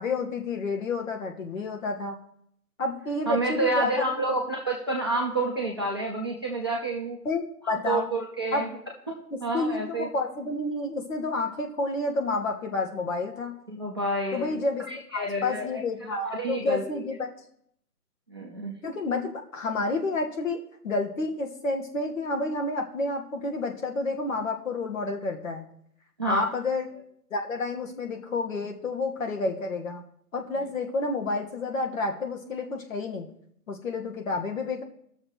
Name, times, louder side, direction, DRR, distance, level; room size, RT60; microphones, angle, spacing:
voice 1, 0.0-2.2 2.8-3.9 7.2-8.1 8.5-8.7 9.3-13.5 14.3-14.8 15.1-17.3 18.8-25.7 26.2-26.9 27.3-30.0 30.3-33.3 33.7-34.8, left 3 dB, 55° left, 2 dB, 1.5 m, -30 dB
voice 2, 3.3-7.2 7.9-8.7 9.4-10.1 13.7-14.5 14.9-15.8 16.2-16.8 18.3-18.7 26.2-26.4, right 2 dB, 15° right, -2 dB, 0.5 m, -29 dB
18.0 x 6.6 x 3.0 m, 0.70 s
figure-of-eight pair, 145°, 48 cm